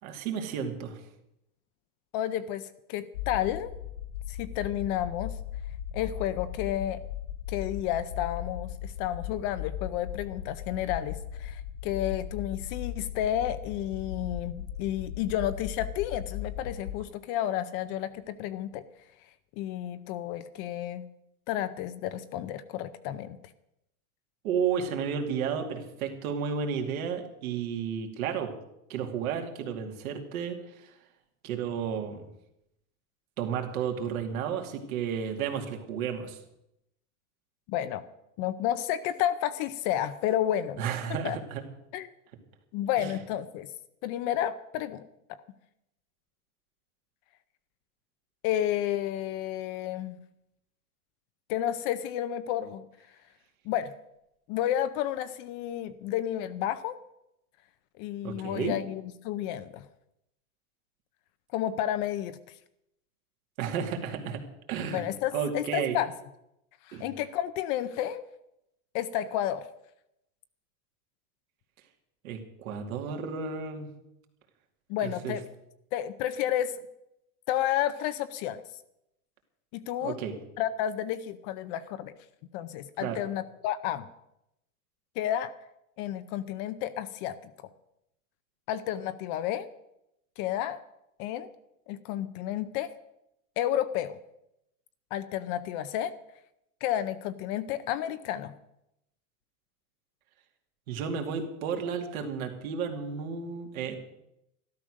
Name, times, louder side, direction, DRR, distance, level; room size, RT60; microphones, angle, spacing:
voice 1, 0.0-1.0 24.4-28.5 28.9-30.6 30.8-30.9 31.4-32.2 33.4-36.4 40.8-41.6 43.0-43.1 58.2-58.7 63.6-64.4 64.7-65.0 65.3-66.0 66.9-67.1 72.2-73.9 75.0-75.4 80.0-80.3 83.0-83.2 100.9-104.0, right 7 dB, 65° right, 4 dB, 2.8 m, -32 dB
voice 2, 2.1-3.7 4.3-5.4 5.9-7.0 7.5-18.8 19.6-21.0 21.5-23.4 37.7-38.0 38.4-40.8 41.2-41.4 41.9-42.1 42.7-43.7 44.0-45.4 48.4-50.2 51.5-52.9 53.7-53.9 54.5-57.0 58.0-59.9 61.5-62.4 64.9-66.1 66.9-68.3 68.9-69.6 74.9-75.4 75.9-76.7 77.5-78.6 79.7-80.2 80.6-82.1 82.5-84.1 85.2-85.5 86.0-87.5 88.7-89.7 90.4-90.8 91.2-91.5 91.9-92.9 93.6-94.2 95.1-96.1 96.8-98.5, left 11 dB, 35° left, 12 dB, 0.6 m, -31 dB
sound 1, 3.1-17.0, left 10 dB, 85° left, 0.9 m, -38 dB
13.0 x 12.5 x 6.4 m, 0.83 s
supercardioid pair, 150°, 45 cm